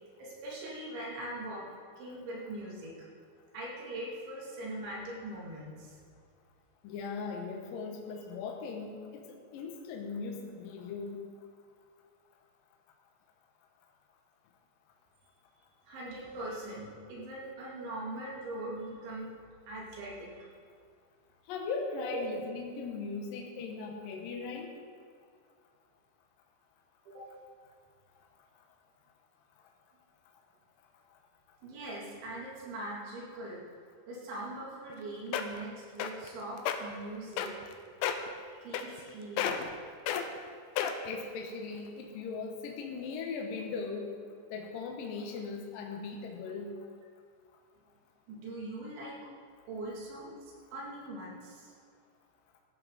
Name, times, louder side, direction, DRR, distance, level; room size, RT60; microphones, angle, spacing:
voice 1, 0.2-1.7 2.0-3.0 3.5-6.0 15.9-19.3 19.7-20.5 22.1-22.2 27.1-27.3 31.6-33.6 34.1-37.5 38.5-39.9 48.3-49.2 49.7-51.7, right 1 dB, 80° right, -5 dB, 4.9 m, -41 dB
voice 2, 6.8-9.2 9.5-11.2 21.5-24.7 41.0-44.1 44.5-46.7, left 4 dB, 70° left, 1 dB, 2.2 m, -39 dB
sound 1, 34.9-35.0 35.3-35.6 36.0-36.3 36.6-36.8 37.4-37.7 38.0-38.3 38.7-39.1 39.4-39.7 40.1-40.2 40.8-41.1 41.8-41.9, left 9 dB, 85° left, 2.2 m, -31 dB
16.0 x 11.5 x 4.0 m, 2.1 s
omnidirectional pair, 5.3 m